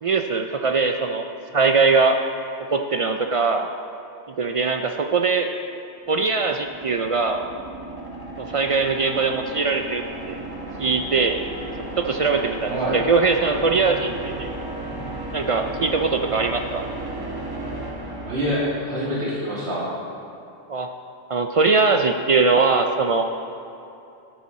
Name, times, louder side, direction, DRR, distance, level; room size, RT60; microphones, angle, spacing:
voice 1, 0.0-1.2 1.5-2.2 2.7-3.7 4.4-5.5 6.1-7.5 8.4-10.4 10.8-11.4 12.0-14.5 15.3-16.8 20.7-20.9 21.3-23.2, right 4 dB, 60° right, 5 dB, 0.3 m, -21 dB
sound 1, 6.1-19.2, right 2 dB, 20° right, 1.1 m, -34 dB
voice 2, 12.7-13.0 18.2-19.8, equal, 85° right, -8 dB, 2.9 m, -25 dB
13.0 x 7.0 x 4.2 m, 2.7 s
omnidirectional pair, 1.1 m